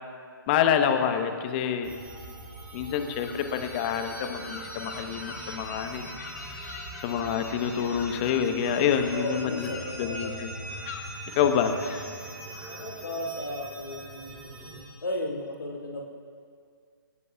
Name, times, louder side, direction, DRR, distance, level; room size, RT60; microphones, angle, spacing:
voice 1, 0.5-1.9 2.7-6.1 6.5-6.7 7.0-9.7 10.0-10.5 11.3-11.8, left 8 dB, 25° left, 7 dB, 1.0 m, -27 dB
sound 1, 1.8-14.8, right 2 dB, 20° right, 3.0 m, -42 dB
sound 2, 3.2-13.5, left 5 dB, 45° left, 1.6 m, -45 dB
voice 2, 9.1-10.4 12.7-14.4 15.0-16.0, left 1 dB, 70° left, 0 dB, 2.1 m, -34 dB
28.0 x 12.0 x 2.4 m, 2.1 s
figure-of-eight pair, 135°, 12 cm